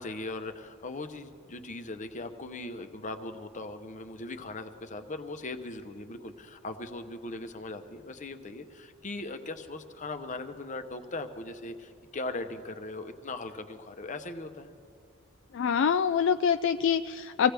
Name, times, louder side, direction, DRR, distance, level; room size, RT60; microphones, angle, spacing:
voice 1, 0.0-14.7, left 2 dB, 35° left, 8 dB, 0.8 m, -39 dB
voice 2, 15.5-17.5, left 7 dB, 60° left, 9 dB, 0.3 m, -25 dB
25.5 x 16.5 x 3.4 m, 2.4 s
head